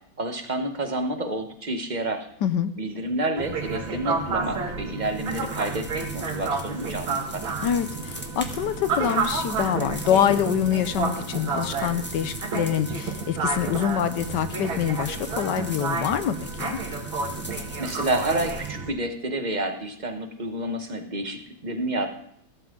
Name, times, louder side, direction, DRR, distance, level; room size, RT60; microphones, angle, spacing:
voice 1, 0.2-2.3 2.8-7.5 17.8-22.1, right 1 dB, 25° right, 6 dB, 1.2 m, -29 dB
voice 2, 2.4-2.7 7.6-16.8, left 9 dB, 70° left, 12 dB, 1.3 m, -25 dB
sound 1, 3.4-18.9, right 4 dB, 85° right, 2.6 m, -30 dB
sound 2, 5.0-18.7, equal, 5° left, 1.3 m, -42 dB
15.0 x 13.5 x 3.8 m, 0.69 s
omnidirectional pair, 2.1 m